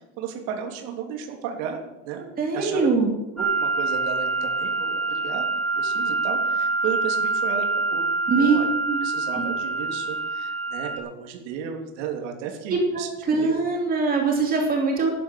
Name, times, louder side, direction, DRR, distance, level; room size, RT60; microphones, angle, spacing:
voice 1, 0.2-2.3 2.5-2.9 3.3-8.0 8.4-8.7 9.0-13.6, right 7 dB, 70° right, 3 dB, 3.5 m, -34 dB
voice 2, 2.4-3.1 8.3-8.6 8.9-9.0 9.3-9.4 12.7-15.1, right 4 dB, 25° right, 1 dB, 2.9 m, -22 dB
sound 1, 3.4-11.0, right 3 dB, ahead, 4.8 m, -26 dB
13.5 x 11.0 x 9.6 m, 0.96 s
cardioid pair, 180°, 35 cm